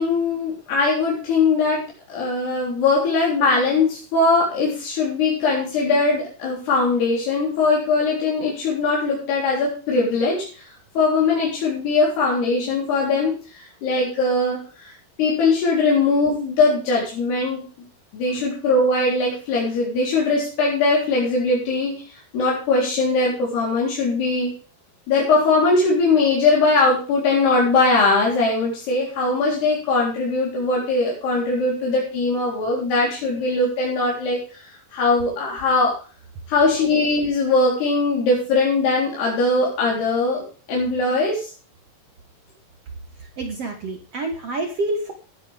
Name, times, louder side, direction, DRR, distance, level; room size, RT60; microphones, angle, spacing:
voice 1, 0.0-10.6 11.0-14.9 15.2-17.6 18.1-22.0 22.3-24.5 25.1-34.4 34.9-36.0 36.5-40.4 40.7-41.5, left 3 dB, 85° left, -4 dB, 5.9 m, -20 dB
voice 2, 43.2-45.1, right 2 dB, 55° right, 4 dB, 1.8 m, -28 dB
18.0 x 9.0 x 3.5 m, 0.37 s
omnidirectional pair, 4.5 m